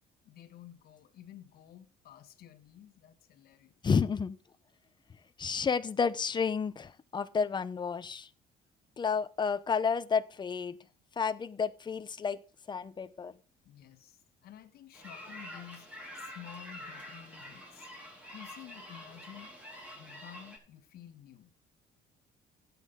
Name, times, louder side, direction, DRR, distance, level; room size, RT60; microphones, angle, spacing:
voice 1, 0.2-3.7 13.6-15.9 16.2-17.9 18.3-19.5 20.0-21.5, left 11 dB, 65° left, 1.5 m, -51 dB
voice 2, 3.8-4.4 5.4-8.3 9.0-10.8 11.2-12.4 12.7-13.3, left 6 dB, 25° left, 0.8 m, -31 dB
sound 1, 14.9-20.6, left 1 dB, 10° right, 4.1 m, -47 dB
13.0 x 8.5 x 3.7 m
cardioid pair, 110°, 17 cm